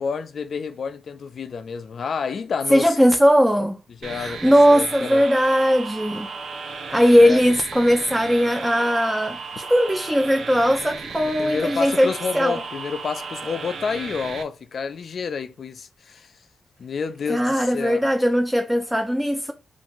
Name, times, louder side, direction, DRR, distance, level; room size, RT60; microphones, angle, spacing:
voice 1, 0.0-3.0 3.9-5.2 7.2-7.5 11.4-16.3 16.8-18.0, left 5 dB, 60° left, 0.3 m, -29 dB
voice 2, 2.7-3.8 4.2-6.3 6.9-12.6 17.3-19.5, equal, 5° right, 0.4 m, -19 dB
sound 1, 4.0-14.4, right 4 dB, 70° right, 0.6 m, -35 dB
2.5 x 2.4 x 2.9 m
cardioid pair, 90°, 0 cm